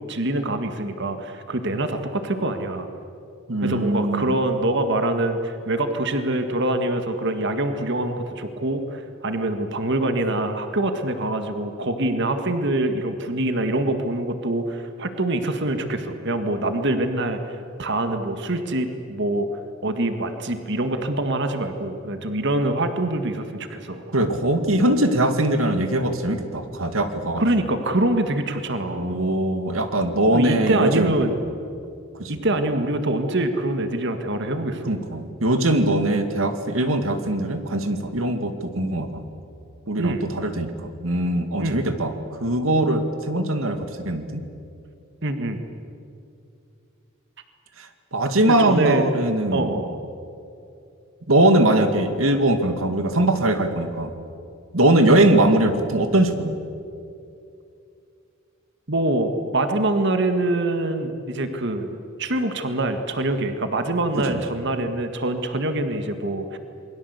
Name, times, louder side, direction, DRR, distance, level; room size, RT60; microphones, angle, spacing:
voice 1, 0.0-2.9 3.6-19.5 19.8-24.0 27.4-29.1 30.3-31.3 32.3-35.0 40.0-40.3 41.6-41.8 45.2-45.6 48.5-49.0 49.5-50.0 58.9-66.6, right 1 dB, 60° right, 7 dB, 1.8 m, -25 dB
voice 2, 3.5-4.3 24.1-27.4 28.9-31.2 32.2-32.3 34.9-39.3 39.9-42.1 42.4-44.4 48.1-49.7 51.3-54.1 54.7-56.6, right 1 dB, 90° right, 8 dB, 2.3 m, -21 dB
28.0 x 22.0 x 8.2 m, 2.6 s
head